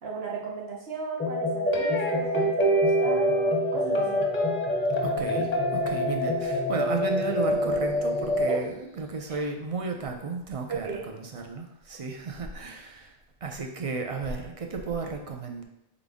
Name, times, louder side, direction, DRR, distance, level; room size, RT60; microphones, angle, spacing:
voice 1, 0.0-4.2 8.5-8.6 9.3-9.4 10.7-11.1, right 4 dB, 85° right, -3 dB, 1.2 m, -36 dB
sound 1, 1.2-8.6, left 1 dB, 10° left, 0.6 m, -27 dB
sound 2, 1.7-8.8, right 2 dB, 45° left, 0.7 m, -31 dB
voice 2, 5.0-15.6, right 4 dB, 45° right, 3 dB, 0.5 m, -34 dB
3.9 x 3.4 x 3.5 m, 0.84 s
omnidirectional pair, 1.0 m